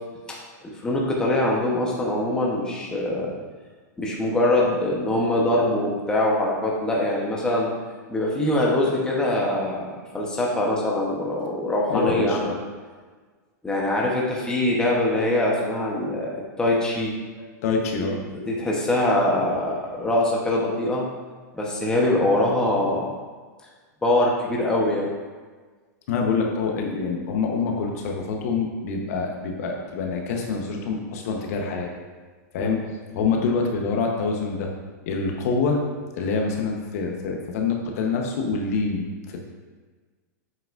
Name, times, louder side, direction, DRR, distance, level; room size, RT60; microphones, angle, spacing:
voice 1, 0.3-3.3 4.0-7.7 8.1-12.5 13.6-16.3 16.6-17.4 18.0-18.1 18.4-21.0 21.5-23.1 24.0-25.1 32.6-32.8, left 1 dB, 10° left, -3 dB, 1.0 m, -23 dB
voice 2, 11.9-12.6 17.6-18.2 26.1-31.9 32.5-32.8 33.1-34.7 35.1-35.8 36.1-39.4, left 4 dB, 55° left, 1 dB, 1.0 m, -26 dB
7.7 x 5.8 x 2.5 m, 1.4 s
supercardioid pair, 150°, 10 cm